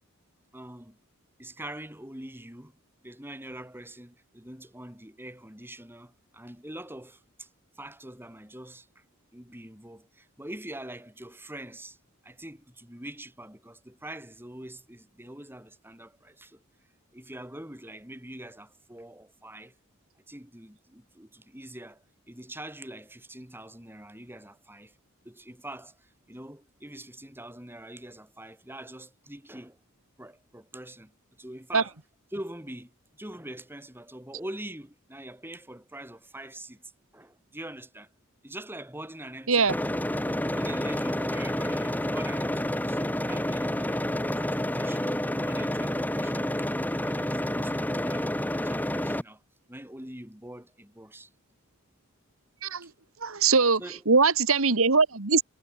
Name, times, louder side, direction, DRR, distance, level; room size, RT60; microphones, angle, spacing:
voice 1, 0.5-1.0 1.4-2.8 3.0-7.5 7.8-9.0 9.3-12.0 12.2-16.6 17.1-19.7 20.3-25.0 25.2-29.8 30.2-31.9 32.3-36.8 37.1-38.1 38.4-39.9 40.4-44.1 44.4-49.4 49.7-51.3 52.8-52.9 53.8-54.0, right 1 dB, 10° right, 5.9 m, -44 dB
sound 1, 39.7-49.2, left 1 dB, 10° left, 2.8 m, -29 dB
voice 2, 53.2-53.8 54.1-55.4, right 4 dB, 70° right, 1.8 m, -21 dB
head